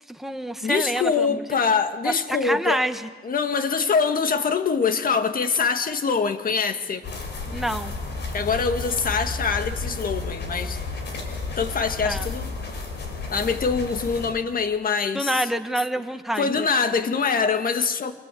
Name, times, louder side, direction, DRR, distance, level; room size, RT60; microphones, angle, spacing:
voice 1, 0.1-1.6 2.0-3.1 7.5-7.9 12.0-12.3 15.1-16.7, right 1 dB, ahead, 6 dB, 1.7 m, -27 dB
voice 2, 0.6-2.8 3.2-7.1 8.3-10.8 11.6-12.5 13.3-15.4 16.4-18.1, left 5 dB, 45° left, 8 dB, 1.9 m, -24 dB
sound 1, 7.0-14.3, left 3 dB, 60° left, 5.5 m, -32 dB
25.5 x 19.5 x 8.4 m, 1.4 s
cardioid pair, 90°, 20 cm